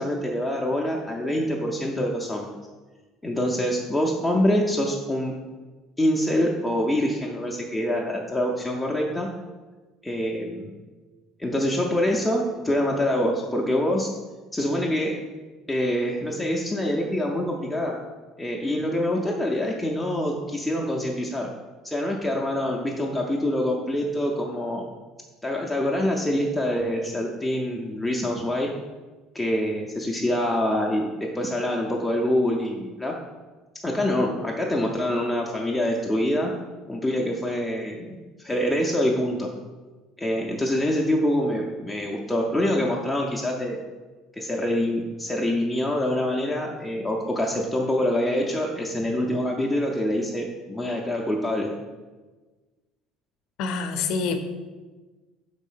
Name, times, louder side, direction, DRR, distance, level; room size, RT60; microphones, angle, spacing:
voice 1, 0.0-2.5 3.2-5.3 6.0-9.3 10.0-10.7 11.4-14.1 14.5-15.2 15.7-18.0 18.4-21.5 21.8-24.9 25.4-28.7 29.3-33.2 33.8-36.5 36.9-39.5 40.2-43.8 44.4-51.7, left 1 dB, 5° left, -1 dB, 0.4 m, -25 dB
voice 2, 53.6-54.4, left 5 dB, 55° left, 8 dB, 0.5 m, -26 dB
5.3 x 4.1 x 5.5 m, 1.3 s
cardioid pair, 180°, 0 cm